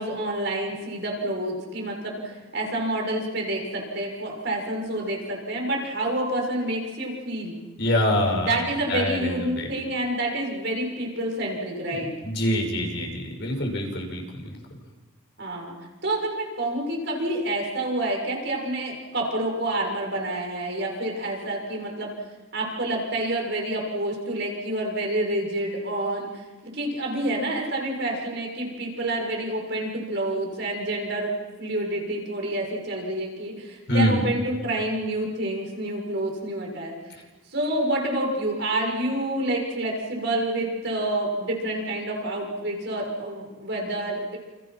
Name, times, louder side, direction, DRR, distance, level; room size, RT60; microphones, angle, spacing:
voice 1, 0.0-7.6 8.5-12.1 15.4-15.7 16.0-22.1 22.5-37.0 37.5-44.4, right 1 dB, 55° right, 0 dB, 6.9 m, -28 dB
voice 2, 7.8-8.6 8.9-9.7 12.2-14.2 33.9-34.2, left 1 dB, 55° left, 2 dB, 6.2 m, -24 dB
29.5 x 29.0 x 6.1 m, 1.2 s
head